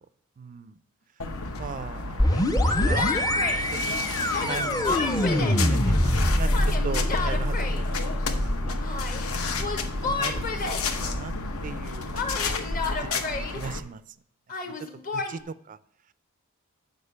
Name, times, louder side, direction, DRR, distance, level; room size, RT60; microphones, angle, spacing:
voice 1, 0.4-0.7 1.6-2.2 2.8-3.1 3.7-6.1 6.4-6.5 6.8-7.7 8.3-8.8 9.5-9.7 10.0-10.6 10.9-11.3 11.6-12.6 13.6-14.0 15.1-15.4 15.7-15.8, right 5 dB, 40° right, 16 dB, 0.4 m, -38 dB
sound 1, 1.2-13.8, left 3 dB, 75° left, 0.9 m, -32 dB
sound 2, 2.2-11.8, left 1 dB, 15° left, 0.5 m, -25 dB
Yell, 2.7-3.6 4.3-5.7 6.5-7.8 8.8-9.3 9.6-10.9 12.1-13.6 14.5-15.4, left 4 dB, 40° left, 1.0 m, -32 dB
6.5 x 5.1 x 6.7 m, 0.66 s
head